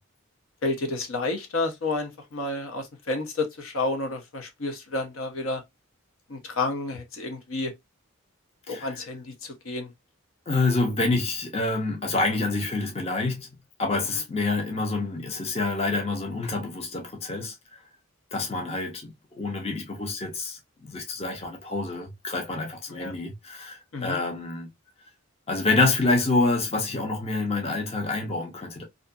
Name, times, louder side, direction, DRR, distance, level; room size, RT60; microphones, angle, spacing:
voice 1, 0.6-5.6 6.3-7.7 8.7-9.9 22.9-23.1 23.9-24.2, left 2 dB, 70° left, 0.7 m, -30 dB
voice 2, 10.5-13.5 13.8-17.8 18.3-24.7 25.5-28.8, left 3 dB, 30° left, 0.5 m, -27 dB
2.6 x 2.4 x 2.3 m
head